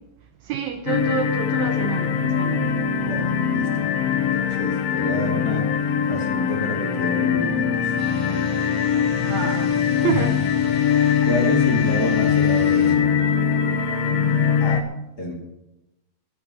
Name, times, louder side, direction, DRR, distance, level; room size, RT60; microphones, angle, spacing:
voice 1, 0.4-2.7 9.3-9.7 10.0-10.4, right 8 dB, 70° right, 7 dB, 1.9 m, -28 dB
sound 1, 0.9-14.8, left 7 dB, 70° left, 1.6 m, -22 dB
voice 2, 2.6-5.7 6.1-8.0 10.1-10.2 11.2-13.3 14.6-14.9 15.2-15.3, left 1 dB, 35° left, 0 dB, 2.4 m, -29 dB
sound 2, 8.0-13.0, right 1 dB, 5° right, 2.5 m, -38 dB
10.5 x 8.6 x 9.6 m, 0.93 s
omnidirectional pair, 3.8 m